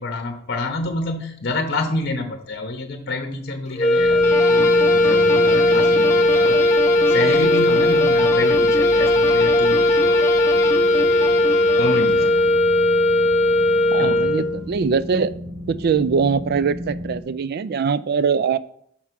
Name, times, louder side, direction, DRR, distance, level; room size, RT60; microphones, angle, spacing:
voice 1, 0.0-6.6 7.1-10.3 11.8-12.3 14.0-14.3, left 2 dB, 55° left, 6 dB, 0.8 m, -28 dB
sound 1, 3.8-14.6, left 1 dB, 35° left, 1.1 m, -17 dB
sound 2, 3.9-17.2, left 1 dB, 75° right, 2.1 m, -35 dB
sound 3, 4.2-12.6, left 2 dB, 15° left, 0.7 m, -28 dB
voice 2, 13.9-15.3 15.7-18.6, right 6 dB, 50° right, 16 dB, 0.4 m, -22 dB
5.9 x 4.7 x 6.0 m, 0.67 s
head